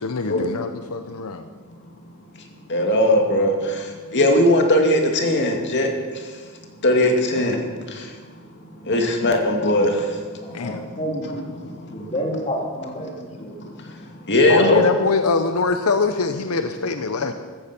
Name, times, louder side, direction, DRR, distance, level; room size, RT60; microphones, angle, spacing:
voice 1, 0.0-1.5 10.5-10.8 14.5-17.3, left 4 dB, 80° left, 8 dB, 0.8 m, -23 dB
voice 2, 2.7-3.5 4.1-5.9 6.8-7.6 8.9-9.9 14.3-14.8, left 1 dB, 55° left, 3 dB, 2.4 m, -18 dB
voice 3, 10.4-11.4 11.9-13.5, equal, 30° left, 0 dB, 3.1 m, -29 dB
15.0 x 14.5 x 6.0 m, 1.5 s
head